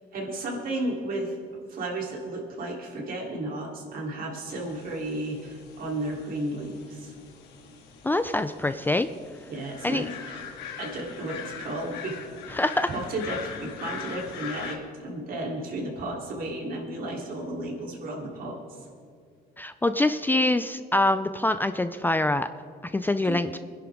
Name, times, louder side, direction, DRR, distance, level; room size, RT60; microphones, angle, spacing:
voice 1, 0.0-1.3 1.7-7.1 9.5-10.4 10.8-12.2 12.9-18.8 23.0-23.4, right 1 dB, 60° right, -1 dB, 3.4 m, -33 dB
sound 1, 4.5-14.8, left 7 dB, 90° left, 1.9 m, -42 dB
voice 2, 8.0-9.1 9.8-10.1 12.5-12.9 19.6-22.5 22.8-23.6, left 2 dB, 10° left, 10 dB, 0.4 m, -25 dB
23.5 x 10.5 x 3.6 m, 2.3 s
cardioid pair, 110°, 17 cm